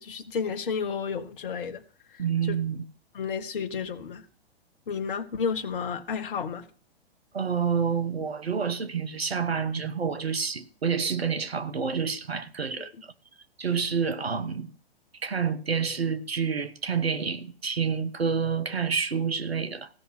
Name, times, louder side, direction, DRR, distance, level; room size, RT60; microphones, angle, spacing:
voice 1, 0.0-1.8 2.1-2.6 3.1-4.2 4.9-6.7 12.8-12.9, left 6 dB, 60° left, 1.4 m, -32 dB
voice 2, 2.2-2.8 7.3-13.1 13.6-14.7 15.2-19.9, right 6 dB, 75° right, 1.3 m, -28 dB
16.0 x 5.6 x 5.8 m
figure-of-eight pair, 110°, 31 cm